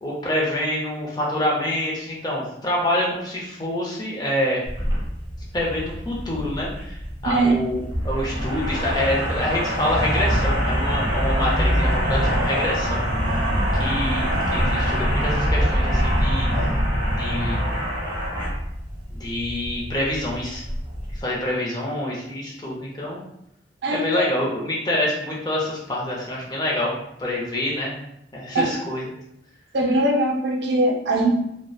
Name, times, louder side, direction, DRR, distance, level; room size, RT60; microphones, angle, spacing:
voice 1, 0.0-4.6 5.5-13.5 13.8-16.8 17.2-17.6 19.1-20.6 21.2-23.2 23.9-27.9 28.3-29.1, left 1 dB, 20° left, -4 dB, 0.5 m, -26 dB
sound 1, 4.6-21.2, equal, 25° right, 0.9 m, -24 dB
voice 2, 23.8-24.2 28.5-28.6 29.7-31.3, right 2 dB, 70° right, 1 dB, 0.5 m, -21 dB
2.8 x 2.1 x 2.3 m, 0.79 s
head